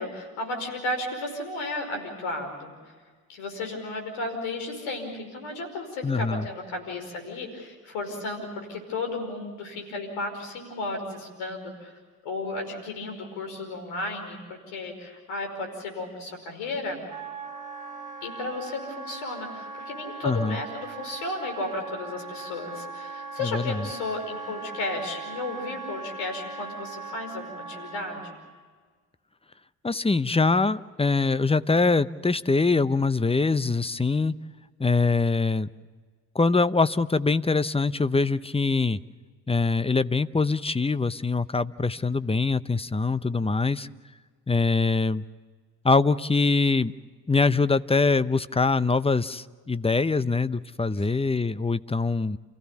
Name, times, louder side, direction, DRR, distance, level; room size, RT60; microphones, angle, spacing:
voice 1, 0.0-2.7 3.3-17.1 18.2-28.4, left 2 dB, 75° left, 4 dB, 5.3 m, -34 dB
voice 2, 6.0-6.5 20.2-20.6 23.5-23.8 29.8-34.3 34.8-35.7 36.3-39.0 39.5-43.9 44.5-45.2 45.8-46.9 47.3-52.4, left 3 dB, 10° left, 15 dB, 0.8 m, -23 dB
Wind instrument woodwind instrument, 17.1-28.4, right 4 dB, 15° right, 3.3 m, -39 dB
29.0 x 16.0 x 7.1 m, 1.5 s
hypercardioid pair, 45°, 49 cm